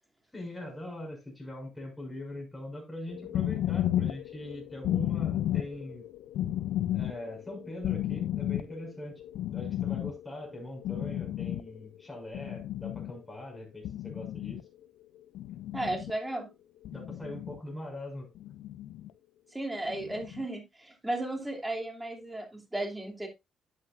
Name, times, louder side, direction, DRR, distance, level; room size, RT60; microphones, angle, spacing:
voice 1, 0.3-6.1 6.9-9.2 9.5-14.6 16.9-18.3, left 1 dB, 15° left, 6.2 m, -42 dB
sound 1, 3.1-11.9 12.1-13.2 13.8-14.6 15.4-16.1 16.9-17.6 18.4-19.1 19.9-20.5, left 12 dB, 85° left, 0.4 m, -33 dB
voice 2, 15.7-16.5 19.5-23.3, right 1 dB, 10° right, 2.8 m, -34 dB
11.5 x 8.0 x 2.5 m
cardioid pair, 90°, 0 cm